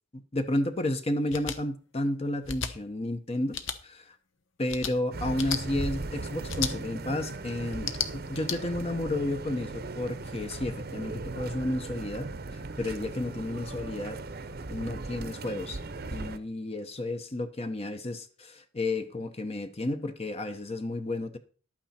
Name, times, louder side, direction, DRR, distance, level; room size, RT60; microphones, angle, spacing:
voice 1, 0.1-3.6 3.8-4.2 4.6-14.2 14.7-15.8 16.1-21.4, left 1 dB, 30° left, 0.9 m, -32 dB
sound 1, 1.3-1.6 2.4-2.7 3.5-3.8 4.7-4.9 5.4-5.6 6.5-6.7 7.7-8.6, left 7 dB, 90° left, 1.0 m, -33 dB
sound 2, 5.1-16.4, right 3 dB, 55° right, 0.8 m, -38 dB
11.5 x 8.8 x 4.3 m
head